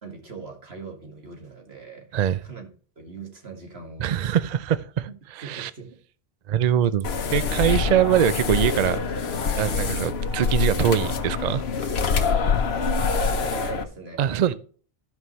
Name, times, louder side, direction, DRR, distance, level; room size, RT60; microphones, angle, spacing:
voice 1, 0.0-2.7 3.0-4.4 5.1-6.0 12.6-14.5, right 5 dB, 85° right, 2.2 m, -40 dB
voice 2, 4.0-5.1 5.4-5.7 6.5-9.0 9.6-11.9 14.2-14.5, right 9 dB, 55° right, 0.5 m, -23 dB
sound 1, 7.0-13.8, left 5 dB, 85° left, 1.2 m, -25 dB
14.0 x 5.4 x 3.1 m
omnidirectional pair, 1.0 m